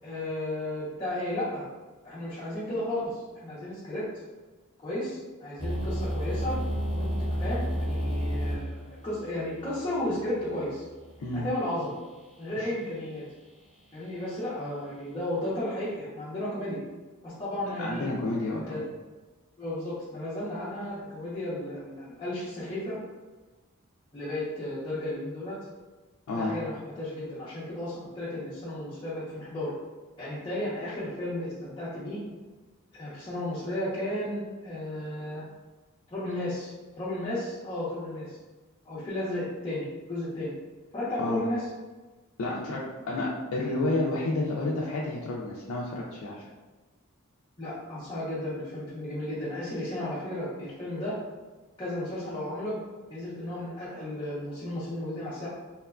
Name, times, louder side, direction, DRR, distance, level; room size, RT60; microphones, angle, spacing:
voice 1, 0.0-1.6 2.0-4.0 4.8-6.6 6.9-10.8 11.3-12.0 12.4-13.2 13.9-16.8 17.2-18.1 18.7-18.8 19.6-23.0 24.1-25.6 26.3-29.7 30.2-32.2 32.9-35.4 36.1-38.4 38.8-40.5 40.9-41.7 47.6-51.2 51.8-52.8 53.1-55.5, left 1 dB, 25° left, -10 dB, 0.6 m, -34 dB
sound 1, 5.6-11.5, equal, 10° right, 0.8 m, -32 dB
voice 2, 17.8-18.6 26.3-26.5 41.2-41.4 42.4-46.5, left 2 dB, 75° left, -4 dB, 0.4 m, -30 dB
2.9 x 2.2 x 2.3 m, 1.2 s
head